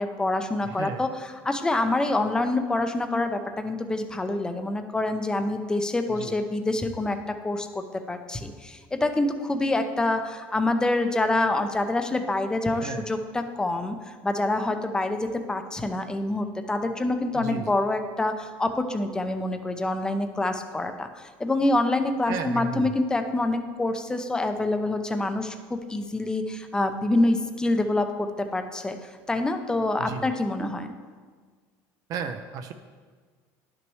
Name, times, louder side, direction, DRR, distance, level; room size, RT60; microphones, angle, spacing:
voice 1, 0.0-7.2 7.4-28.3 28.5-29.0 29.3-30.9, left 2 dB, 10° left, 7 dB, 0.5 m, -26 dB
voice 2, 0.6-1.1 6.2-6.3 12.8-13.0 17.3-17.7 22.3-22.9 30.0-30.3 32.1-32.7, right 6 dB, 50° right, 7 dB, 0.5 m, -34 dB
10.5 x 6.1 x 3.1 m, 1.5 s
cardioid pair, 135°, 8 cm